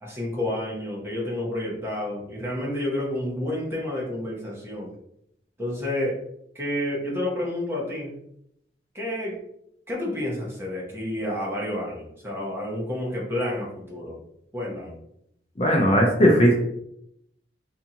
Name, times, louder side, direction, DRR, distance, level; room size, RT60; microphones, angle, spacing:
voice 1, 0.0-4.9 5.6-6.2 6.5-8.1 8.9-9.4 9.9-14.2 14.5-15.0, left 1 dB, 15° right, -4 dB, 0.7 m, -30 dB
voice 2, 15.6-16.5, equal, 35° left, -1 dB, 0.5 m, -17 dB
2.7 x 2.4 x 2.7 m, 0.76 s
head